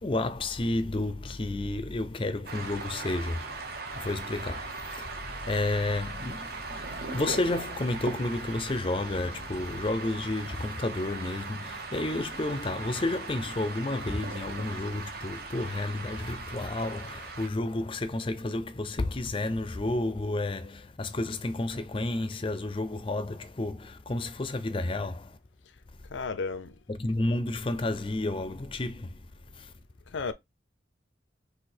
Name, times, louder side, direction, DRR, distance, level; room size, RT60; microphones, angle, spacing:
voice 1, 0.0-3.6 3.9-25.4 27.0-29.1, left 2 dB, 30° left, 0.5 m, -31 dB
sound 1, 2.5-17.5, right 3 dB, 55° right, 1.0 m, -39 dB
voice 2, 26.1-26.8 30.1-30.3, left 4 dB, 90° left, 0.6 m, -33 dB
4.0 x 2.8 x 4.3 m
head